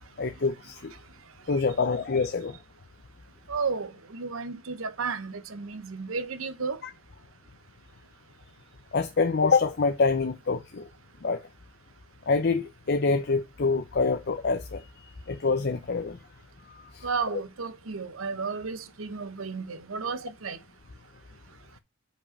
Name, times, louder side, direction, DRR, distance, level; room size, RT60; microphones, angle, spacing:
voice 1, 0.2-0.9 1.5-2.6 8.9-10.8 11.2-11.4 12.3-14.8 15.3-16.2 16.9-17.1, left 4 dB, 50° left, 0.6 m, -26 dB
voice 2, 3.5-6.8 17.0-20.6, right 5 dB, 85° right, 0.8 m, -33 dB
5.3 x 5.1 x 5.3 m
head